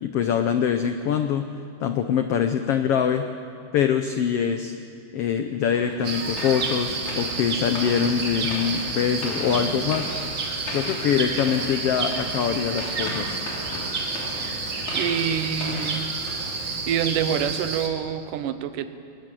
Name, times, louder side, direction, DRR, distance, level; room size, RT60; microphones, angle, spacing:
voice 1, 0.0-1.5 1.8-3.3 3.7-4.8 5.1-10.1 10.7-13.4, left 8 dB, 85° left, 7 dB, 1.3 m, -24 dB
sound 1, 5.7-17.0, left 1 dB, 60° left, 4.7 m, -37 dB
sound 2, 6.0-17.9, right 4 dB, 40° right, 2.3 m, -30 dB
voice 2, 14.9-16.1 16.9-18.9, right 9 dB, 85° right, 11 dB, 2.5 m, -26 dB
20.5 x 20.0 x 7.6 m, 2.4 s
omnidirectional pair, 3.8 m